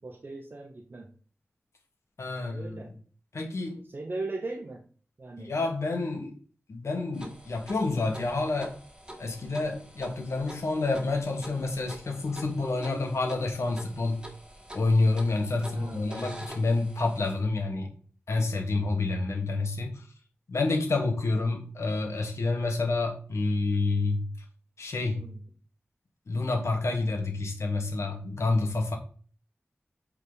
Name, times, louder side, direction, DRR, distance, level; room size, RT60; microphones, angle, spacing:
voice 1, 0.0-1.1 2.3-3.0 3.8-4.8 5.2-5.6 15.6-16.1 25.1-25.5, right 2 dB, 50° right, 0.8 m, -39 dB
voice 2, 2.2-2.8 3.3-3.8 5.4-6.4 6.7-8.8 9.2-14.2 14.7-17.9 18.3-20.0 20.5-24.3 24.8-25.3 26.3-29.0, left 3 dB, 80° left, 1.4 m, -28 dB
sound 1, 7.1-17.3, right 1 dB, 15° right, 1.6 m, -46 dB
8.2 x 3.7 x 4.0 m
wide cardioid pair, 70°, 5 cm